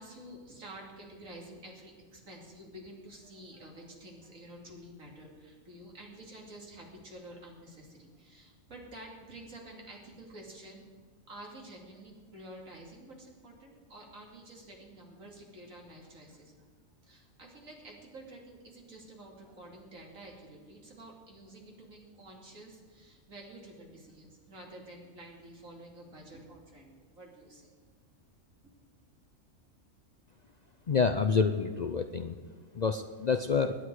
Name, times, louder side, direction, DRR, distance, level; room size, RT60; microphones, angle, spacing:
voice 1, 0.0-10.8 11.3-16.7 17.0-27.7 28.6-28.7, right 1 dB, 90° right, -1 dB, 3.3 m, -50 dB
voice 2, 30.9-32.3 32.7-33.8, left 5 dB, 50° left, 8 dB, 0.5 m, -28 dB
21.0 x 9.8 x 4.8 m, 1.6 s
omnidirectional pair, 1.4 m